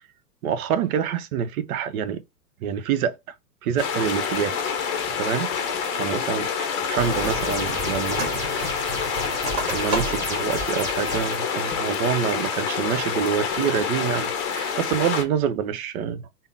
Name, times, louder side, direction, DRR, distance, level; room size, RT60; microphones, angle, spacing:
voice 1, 0.4-2.2 2.6-3.1 3.6-4.6 5.2-5.5 6.0-8.5 9.7-16.5, right 8 dB, 60° right, 0.6 m, -26 dB
sound 1, 3.8-15.2, left 6 dB, 30° left, 0.7 m, -27 dB
sound 2, 7.0-11.4, equal, 5° right, 1.9 m, -33 dB
sound 3, 7.9-8.4 8.7-10.4 10.9-11.0 11.5-11.9 12.4-12.8, right 2 dB, 35° right, 1.5 m, -32 dB
3.5 x 2.1 x 2.6 m
hypercardioid pair, 120°, 48 cm